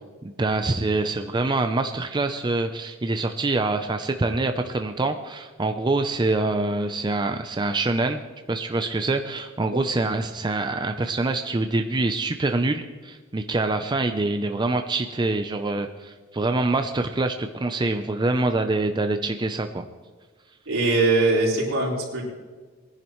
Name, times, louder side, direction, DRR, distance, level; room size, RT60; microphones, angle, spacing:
voice 1, 0.2-8.2 8.5-19.8, right 2 dB, 20° right, 6 dB, 0.5 m, -25 dB
voice 2, 20.7-22.2, right 2 dB, 80° right, -4 dB, 4.0 m, -21 dB
21.0 x 10.5 x 3.1 m, 1.4 s
head